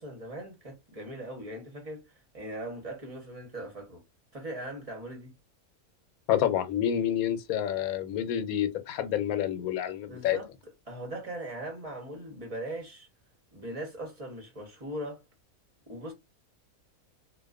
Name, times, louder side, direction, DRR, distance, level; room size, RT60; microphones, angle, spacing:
voice 1, 0.0-4.0 4.3-5.3 10.1-10.5 10.9-13.1 13.5-15.2 15.9-16.1, right 1 dB, 30° right, 0.8 m, -40 dB
voice 2, 6.3-10.4, left 10 dB, 80° left, 1.0 m, -28 dB
2.4 x 2.3 x 2.4 m
omnidirectional pair, 1.5 m